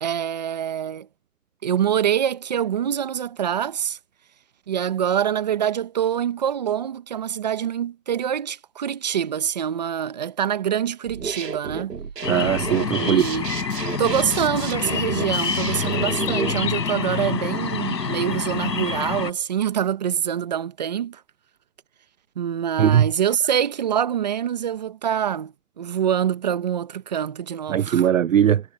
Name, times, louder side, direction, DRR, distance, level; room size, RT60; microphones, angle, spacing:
voice 1, 0.0-1.1 1.6-4.0 4.7-11.9 13.0-13.5 14.0-21.2 22.4-28.1, right 9 dB, 25° right, 1.0 m, -25 dB
sound 1, 11.1-16.5, right 5 dB, 85° right, 3.5 m, -32 dB
sound 2, 12.2-19.3, left 5 dB, 90° left, 7.3 m, -27 dB
voice 2, 12.3-13.2 22.8-23.1 27.7-28.6, right 10 dB, 55° right, 0.5 m, -19 dB
hypercardioid pair, 170°, 48 cm